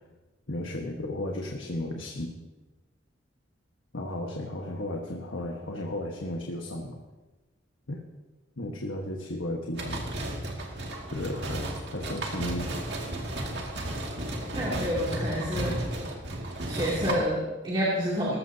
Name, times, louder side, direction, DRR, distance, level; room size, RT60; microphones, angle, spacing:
voice 1, 0.5-2.3 3.9-6.9 7.9-8.0 8.6-10.0 11.1-12.8, left 1 dB, 80° left, 0 dB, 1.4 m, -34 dB
sound 1, 9.8-17.1, right 1 dB, 60° right, 2.2 m, -33 dB
voice 2, 14.5-15.9 16.6-18.4, equal, 25° right, -8 dB, 2.7 m, -28 dB
19.0 x 14.5 x 2.8 m, 1.2 s
head